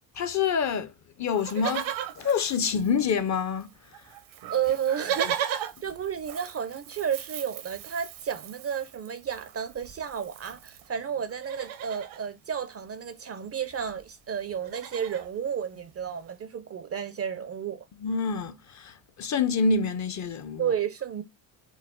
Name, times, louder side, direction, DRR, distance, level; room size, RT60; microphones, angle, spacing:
voice 1, 0.2-0.9 1.2-1.9 2.2-3.7 18.0-20.6, left 5 dB, 40° left, 0.5 m, -27 dB
Livestock farm animals working animals, 1.3-3.3 3.6-3.7 3.9-10.9 11.3-12.2 13.4-13.5 13.7-14.0 14.3-15.3 15.9-16.0, right 10 dB, 75° right, 0.8 m, -37 dB
voice 2, 4.5-17.9 20.6-21.2, right 8 dB, 35° right, 0.4 m, -32 dB
4.7 x 2.0 x 3.6 m
cardioid pair, 100°, 47 cm